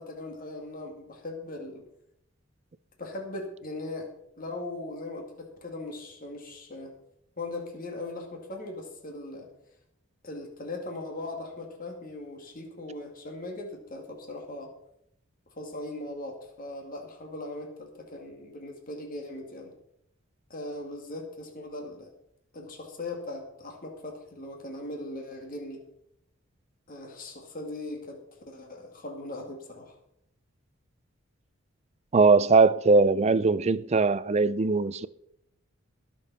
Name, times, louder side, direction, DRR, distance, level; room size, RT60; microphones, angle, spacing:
voice 1, 0.0-1.8 3.0-4.1 4.4-6.9 7.4-9.5 10.2-14.7 15.6-19.7 20.5-22.1 22.5-25.8 26.9-28.2 28.5-30.0, left 2 dB, 40° left, 2.2 m, -39 dB
voice 2, 32.1-35.1, right 4 dB, 30° right, 0.4 m, -21 dB
20.5 x 7.0 x 4.2 m
head